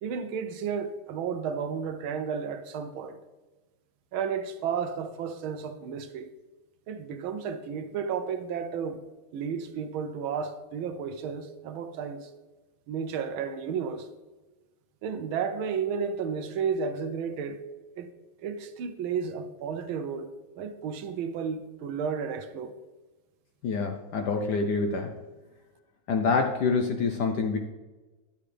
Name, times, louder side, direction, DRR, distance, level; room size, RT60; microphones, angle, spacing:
voice 1, 0.0-3.2 4.1-6.3 6.9-9.0 9.3-12.3 12.9-14.1 15.0-17.6 18.0-18.1 18.4-20.3 20.6-22.7, right 6 dB, 75° right, 1.5 m, -32 dB
voice 2, 23.6-25.1 26.1-27.6, left 4 dB, 65° left, 1.1 m, -26 dB
10.5 x 8.5 x 3.3 m
omnidirectional pair, 2.4 m